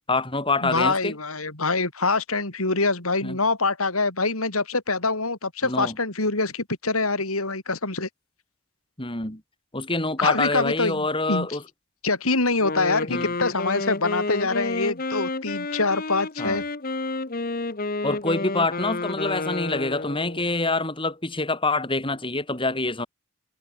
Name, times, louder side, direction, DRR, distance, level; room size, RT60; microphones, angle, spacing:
voice 1, 0.1-1.2 3.2-3.4 5.6-6.0 9.0-9.4 9.7-11.6 13.1-13.3 16.4-16.6 18.0-23.1, left 2 dB, 25° left, 6.2 m, -26 dB
voice 2, 0.6-8.1 10.2-11.5 12.0-16.6, left 3 dB, 85° left, 5.4 m, -25 dB
Wind instrument woodwind instrument, 12.6-20.5, left 3 dB, 45° left, 1.6 m, -30 dB
head